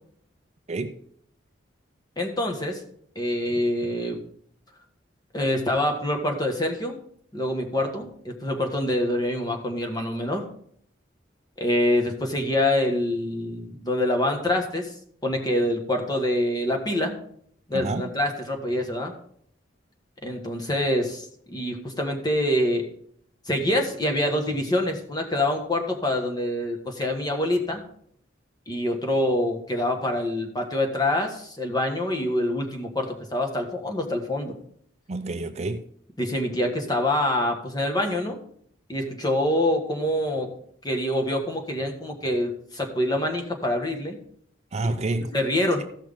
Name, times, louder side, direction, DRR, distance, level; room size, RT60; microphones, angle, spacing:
voice 1, 2.2-2.8 3.1-4.2 5.3-6.9 7.3-10.4 11.6-14.9 15.2-17.2 17.7-19.1 20.2-22.9 23.5-27.8 28.7-34.5 36.2-38.4 38.9-40.5 40.8-44.2 45.3-45.8, left 1 dB, 20° left, 3 dB, 1.4 m, -25 dB
voice 2, 17.7-18.1 35.1-35.9 44.7-45.3, right 2 dB, 35° right, 9 dB, 0.5 m, -28 dB
15.0 x 6.1 x 3.5 m, 0.65 s
head